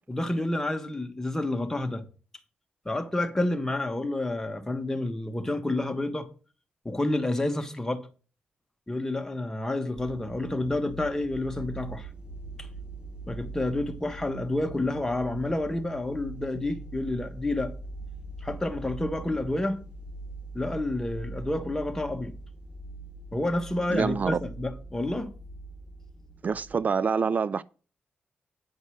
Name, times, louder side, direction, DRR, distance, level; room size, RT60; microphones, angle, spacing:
voice 1, 0.1-2.0 2.8-6.3 6.8-8.0 8.9-12.1 12.6-12.7 13.3-17.7 18.4-19.8 20.5-22.3 23.3-25.3, left 2 dB, 15° left, 1.6 m, -29 dB
sound 1, 10.0-26.7, right 2 dB, 25° right, 3.2 m, -42 dB
voice 2, 23.9-24.4 26.4-27.6, right 5 dB, 50° right, 0.3 m, -26 dB
9.6 x 5.3 x 6.6 m
cardioid pair, 80°, 4 cm